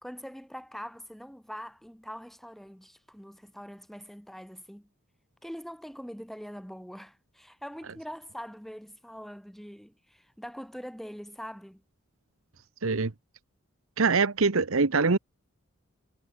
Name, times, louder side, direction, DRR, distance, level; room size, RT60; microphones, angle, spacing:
voice 1, 0.0-4.9 5.4-11.8, equal, ahead, 3.3 m, -43 dB
voice 2, 12.8-13.1 14.0-15.2, right 4 dB, 70° right, 1.0 m, -23 dB
head